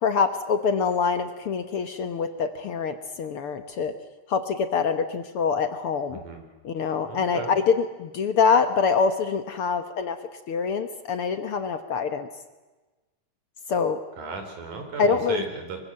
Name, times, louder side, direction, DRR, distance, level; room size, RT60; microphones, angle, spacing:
voice 1, 0.0-4.0 4.3-6.2 6.6-10.2 10.5-12.3 13.7-14.0 15.0-15.4, left 5 dB, 60° left, 9 dB, 1.7 m, -25 dB
voice 2, 6.1-6.4 7.1-7.6 14.2-15.8, right 4 dB, 80° right, 5 dB, 5.8 m, -35 dB
24.0 x 24.0 x 7.6 m, 1.2 s
omnidirectional pair, 3.5 m